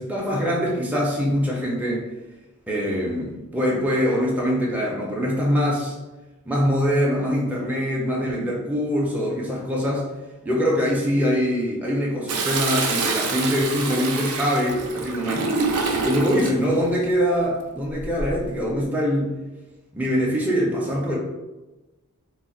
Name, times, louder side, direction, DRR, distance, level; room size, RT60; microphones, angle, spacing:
voice 1, 0.0-2.1 2.7-5.9 6.5-10.0 10.4-15.5 15.9-19.3 19.9-21.2, equal, 5° right, -4 dB, 0.4 m, -23 dB
Toilet flush, 12.3-16.6 18.0-18.5, right 4 dB, 90° right, 0.4 m, -26 dB
2.3 x 2.0 x 3.7 m, 1.1 s
head